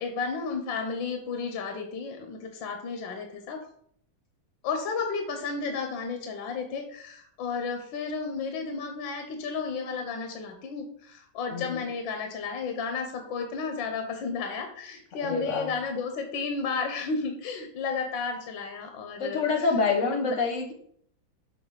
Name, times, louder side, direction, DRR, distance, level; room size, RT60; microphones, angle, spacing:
voice 1, 0.0-3.6 4.6-19.7 20.0-20.4, left 5 dB, 80° left, 5 dB, 1.5 m, -33 dB
voice 2, 11.5-11.8 15.2-15.7 19.2-20.7, left 4 dB, 45° left, 4 dB, 1.2 m, -27 dB
6.5 x 3.8 x 4.7 m, 0.64 s
omnidirectional pair, 2.1 m